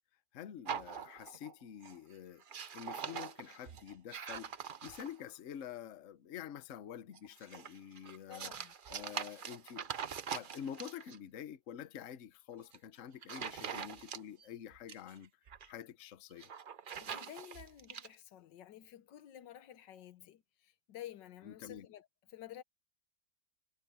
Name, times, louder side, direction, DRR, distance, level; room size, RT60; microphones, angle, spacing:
voice 1, 0.3-2.4 2.7-8.5 8.9-15.3 15.6-16.5 21.4-21.9, left 9 dB, 50° left, 1.1 m, -48 dB
sound 1, 0.7-1.5 1.8-2.1 2.4-5.3 7.1-11.2 12.5-12.8 13.2-14.5 14.7-15.7 16.3-18.1, right 7 dB, 60° right, 0.5 m, -43 dB
voice 2, 8.3-8.7 17.0-22.6, left 12 dB, 80° left, 1.5 m, -51 dB
omnidirectional pair, 1.9 m